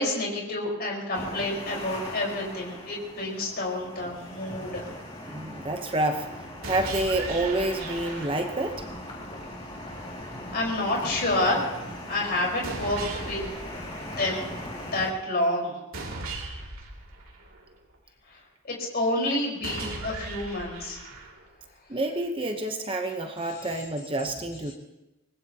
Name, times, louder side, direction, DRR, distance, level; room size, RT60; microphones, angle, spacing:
voice 1, 0.0-4.9 10.5-11.7 12.1-13.4 14.2-14.4 14.8-15.7 18.8-21.0, left 1 dB, 45° left, -2 dB, 4.7 m, -28 dB
sound 1, 1.1-15.1, left 1 dB, 25° left, 2.5 m, -39 dB
voice 2, 5.3-6.3 6.6-8.9 21.9-24.7, right 2 dB, 25° right, 4 dB, 0.9 m, -28 dB
sound 2, 6.6-8.7 12.6-14.6 15.9-17.9 19.6-21.6, right 3 dB, 70° right, 2.6 m, -38 dB
25.0 x 19.5 x 2.9 m, 0.99 s
head